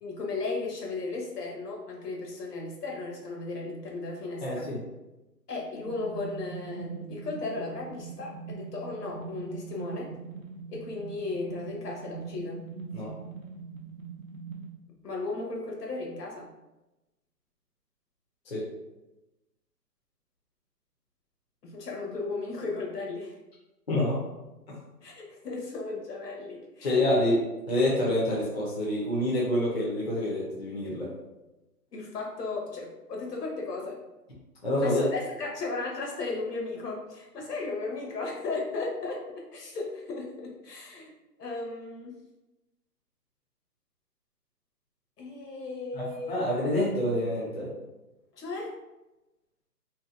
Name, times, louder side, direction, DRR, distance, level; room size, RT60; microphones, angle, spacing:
voice 1, 0.0-4.7 5.5-10.1 10.7-12.7 15.0-16.5 21.6-23.4 25.0-27.2 31.9-34.0 34.8-41.1 41.4-42.2 45.2-46.4 48.3-48.7, left 3 dB, 70° left, -1 dB, 0.9 m, -35 dB
voice 2, 4.4-4.8 12.9-13.1 18.5-18.6 23.9-24.2 26.8-27.4 27.7-31.1 34.6-35.0 45.9-47.7, left 1 dB, 40° left, -6 dB, 0.5 m, -27 dB
sound 1, 5.8-14.7, right 5 dB, 55° right, 0.6 m, -42 dB
2.7 x 2.2 x 2.3 m, 1.0 s
hypercardioid pair, 165°, 50 cm